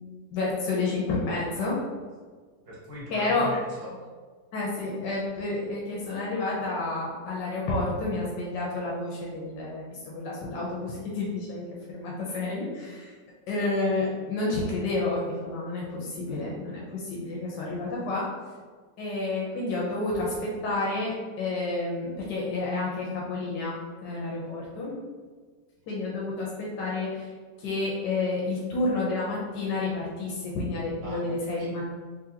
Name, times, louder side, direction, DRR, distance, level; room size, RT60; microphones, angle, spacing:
voice 1, 0.3-1.8 3.1-3.5 4.5-13.1 13.5-18.3 19.0-25.0 25.9-27.3 27.6-31.8, left 2 dB, 85° left, -4 dB, 1.3 m, -30 dB
voice 2, 2.7-3.9 31.0-31.8, equal, 55° right, -6 dB, 1.1 m, -40 dB
3.8 x 2.6 x 2.8 m, 1.5 s
omnidirectional pair, 1.9 m